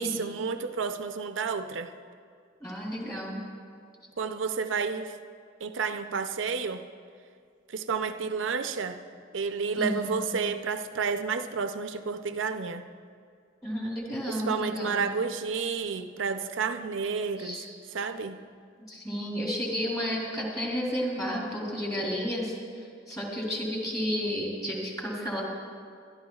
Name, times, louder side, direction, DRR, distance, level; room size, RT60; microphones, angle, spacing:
voice 1, 0.0-1.9 4.2-5.2 5.6-6.9 7.7-9.0 9.3-12.8 14.3-17.7 17.9-18.4, right 5 dB, 75° right, 8 dB, 0.6 m, -31 dB
voice 2, 2.6-3.4 9.8-10.2 13.6-15.0 17.4-17.6 18.9-22.6 23.1-25.4, equal, 20° left, -3 dB, 3.2 m, -32 dB
24.0 x 12.5 x 2.4 m, 2.2 s
head